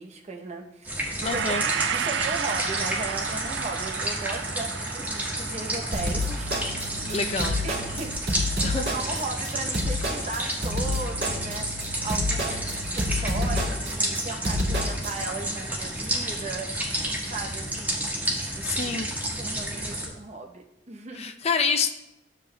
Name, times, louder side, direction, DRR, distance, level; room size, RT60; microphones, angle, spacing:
voice 1, 0.0-1.6 1.9-11.7 12.0-16.7 17.3-18.0 18.5-18.9 19.4-21.3, right 3 dB, 40° right, 2 dB, 0.8 m, -37 dB
sound 1, 0.8-20.1, right 1 dB, 10° right, 1.4 m, -31 dB
voice 2, 1.2-1.7 7.1-7.6 8.6-8.8 18.6-19.1 21.1-21.9, left 5 dB, 35° left, 8 dB, 0.5 m, -27 dB
Gong, 1.2-9.6 10.0-10.2, right 8 dB, 90° right, 0.4 m, -34 dB
sound 2, 5.9-15.1, left 1 dB, 65° right, 2.0 m, -29 dB
11.0 x 7.4 x 2.2 m, 0.91 s
head